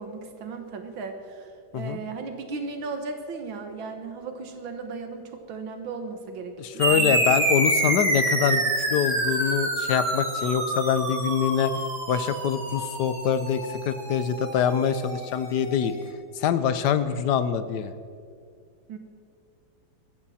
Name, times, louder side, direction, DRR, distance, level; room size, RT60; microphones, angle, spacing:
voice 1, 0.0-7.2 18.9-19.0, right 4 dB, 85° right, 6 dB, 2.1 m, -36 dB
voice 2, 6.6-8.6 8.9-15.9 16.4-17.9, left 8 dB, 65° left, 12 dB, 1.3 m, -25 dB
sound 1, 6.8-15.7, right 1 dB, 60° right, 3.4 m, -27 dB
20.0 x 15.0 x 4.3 m, 2.3 s
omnidirectional pair, 2.1 m